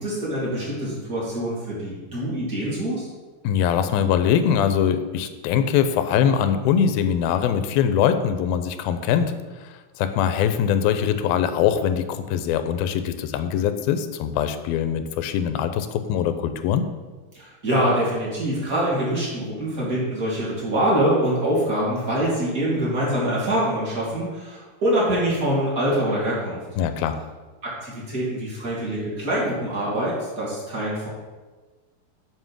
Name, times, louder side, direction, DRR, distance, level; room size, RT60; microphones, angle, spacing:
voice 1, 0.0-3.0 17.3-26.6 27.6-31.1, right 1 dB, 25° right, -6 dB, 2.6 m, -24 dB
voice 2, 3.4-9.4 9.6-16.9 26.8-27.2, left 8 dB, 90° left, 10 dB, 2.4 m, -22 dB
7.7 x 5.1 x 6.2 m, 1.3 s
omnidirectional pair, 4.1 m